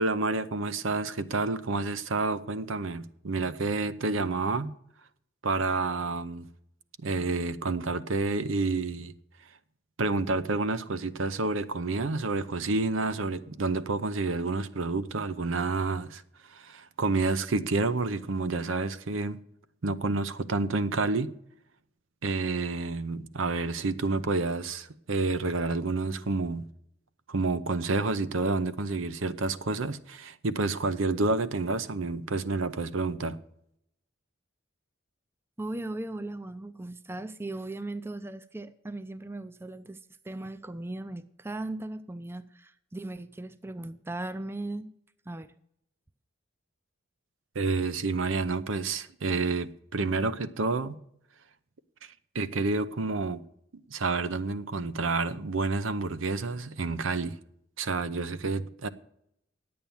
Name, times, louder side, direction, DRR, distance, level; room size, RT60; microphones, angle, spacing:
voice 1, 0.0-4.7 5.4-6.5 7.0-9.1 10.0-16.2 16.5-19.4 19.8-21.3 22.2-26.6 27.3-33.4 47.5-50.9 52.3-53.4 53.9-57.4 57.8-58.9, right 3 dB, 80° right, 0.7 m, -29 dB
voice 2, 3.9-4.4 35.6-40.0 40.2-44.9 45.3-45.5, right 2 dB, 10° right, 0.4 m, -38 dB
10.5 x 8.6 x 7.1 m
head